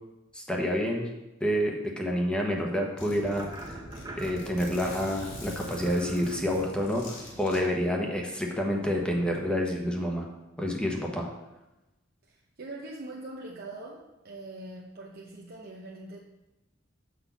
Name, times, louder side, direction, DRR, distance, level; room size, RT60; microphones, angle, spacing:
voice 1, 0.3-1.1 1.4-3.8 4.2-10.3 10.6-11.3, equal, 5° left, 0 dB, 1.0 m, -28 dB
Zipper (clothing), 2.5-2.6 3.0-7.6, left 1 dB, 65° left, 2.9 m, -45 dB
sound 1, 3.0-9.0, right 1 dB, 20° right, 0.9 m, -44 dB
voice 2, 12.3-16.2, right 2 dB, 50° right, -2 dB, 0.8 m, -42 dB
6.1 x 5.5 x 7.0 m, 0.99 s
head